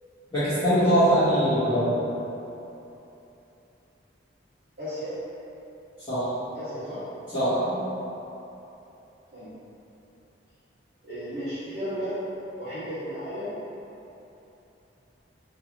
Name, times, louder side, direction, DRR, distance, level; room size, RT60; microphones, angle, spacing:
voice 1, 0.3-1.9 6.1-6.2 7.3-7.8, equal, 25° left, -20 dB, 1.4 m, -22 dB
voice 2, 4.8-5.2 6.5-7.0 9.3-9.5 11.0-12.2 12.6-13.5, equal, 60° right, -16 dB, 1.0 m, -34 dB
3.6 x 2.9 x 3.0 m, 3.0 s
head